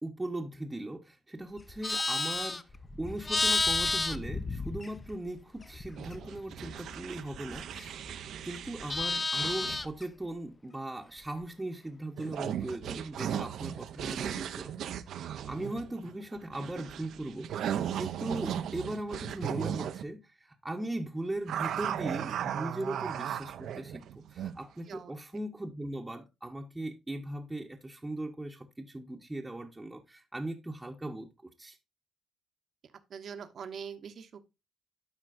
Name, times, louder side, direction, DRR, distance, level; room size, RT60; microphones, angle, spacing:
voice 1, 0.0-8.0 8.4-14.7 15.1-31.8, right 1 dB, 15° right, 0.8 m, -39 dB
Livestock farm animals working animals, 1.6-5.3 5.6-8.1 8.4-10.0, left 3 dB, 25° left, 0.6 m, -32 dB
sound 1, 6.0-9.9 12.2-20.0 21.5-24.6, right 9 dB, 75° right, 0.5 m, -37 dB
voice 2, 33.1-34.4, right 7 dB, 55° right, 0.9 m, -43 dB
12.0 x 4.5 x 2.5 m
cardioid pair, 90°, 0 cm